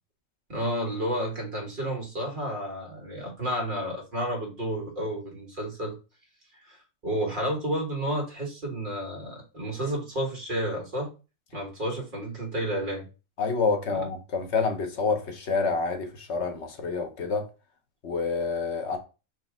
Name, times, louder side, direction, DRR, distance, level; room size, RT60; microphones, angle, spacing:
voice 1, 0.5-5.9 6.7-6.8 7.0-11.1 11.5-13.1 13.9-14.0, equal, 40° right, 1.7 m, -31 dB
voice 2, 13.4-17.5 18.0-19.0, left 4 dB, 60° left, 1.1 m, -28 dB
4.2 x 3.0 x 3.5 m
omnidirectional pair, 1.4 m